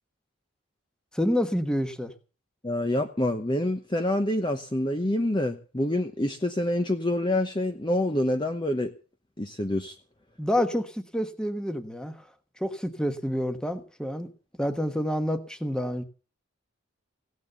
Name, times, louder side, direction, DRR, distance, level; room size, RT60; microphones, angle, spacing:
voice 1, 1.1-2.1 10.4-12.3 12.6-14.3 14.6-16.0, equal, 5° left, 8 dB, 1.2 m, -28 dB
voice 2, 2.6-8.9 9.4-9.9, left 1 dB, 20° left, 6 dB, 0.9 m, -27 dB
17.0 x 9.5 x 6.8 m, 0.37 s
head